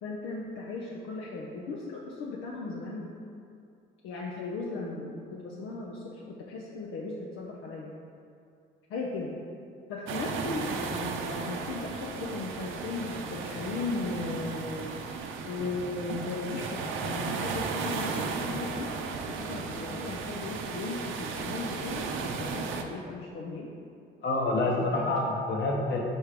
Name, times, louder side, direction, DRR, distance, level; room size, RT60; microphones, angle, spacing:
voice 1, 0.0-3.1 4.0-7.9 8.9-9.3 9.9-15.0 15.4-18.9 19.3-23.7 24.8-25.2, left 3 dB, 85° left, -3 dB, 0.6 m, -37 dB
sound 1, 10.1-22.8, right 5 dB, 85° right, 0.5 m, -35 dB
voice 2, 24.2-26.0, left 2 dB, 65° left, -1 dB, 1.1 m, -27 dB
4.7 x 4.4 x 5.1 m, 2.5 s
cardioid pair, 90°, 20 cm